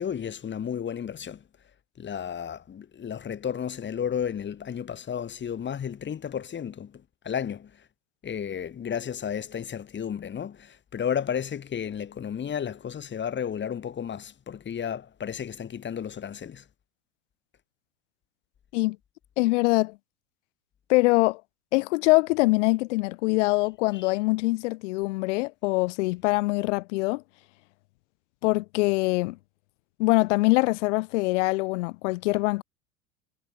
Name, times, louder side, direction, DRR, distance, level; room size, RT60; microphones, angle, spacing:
voice 1, 0.0-1.4 2.0-7.8 8.2-16.6 23.9-24.1, left 8 dB, 25° left, 2.8 m, -33 dB
voice 2, 19.4-19.9 20.9-21.4 21.7-27.2 28.4-29.4 30.0-32.6, left 23 dB, 60° left, 1.1 m, -23 dB
hypercardioid pair, 85°, 40 cm